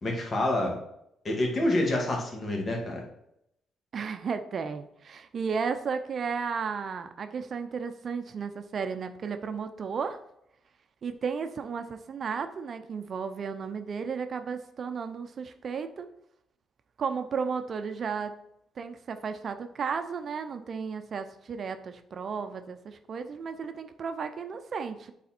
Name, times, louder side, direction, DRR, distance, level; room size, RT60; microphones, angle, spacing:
voice 1, 0.0-0.8 1.2-3.0, left 1 dB, 40° left, 0 dB, 1.9 m, -27 dB
voice 2, 3.9-10.2 11.0-16.1 17.0-18.3 18.8-25.1, right 5 dB, 50° right, 8 dB, 0.6 m, -34 dB
8.3 x 4.2 x 4.4 m, 0.79 s
cardioid pair, 90°, 0 cm